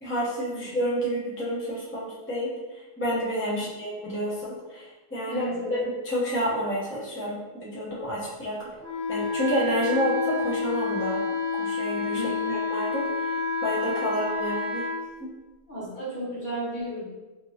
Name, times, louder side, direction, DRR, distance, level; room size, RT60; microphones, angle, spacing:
voice 1, 0.0-5.4 5.7-8.7 9.1-10.1 10.4-11.2 11.6-12.2 12.5-13.3 13.6-14.8 15.2-15.3, equal, 15° left, -7 dB, 0.5 m, -29 dB
voice 2, 5.2-5.8 10.0-10.1 12.1-12.5 15.7-17.1, right 1 dB, 45° left, -8 dB, 1.2 m, -33 dB
Wind instrument woodwind instrument, 8.8-15.0, left 4 dB, 65° right, 1.1 m, -29 dB
3.0 x 2.9 x 2.7 m, 1.2 s
omnidirectional pair, 1.2 m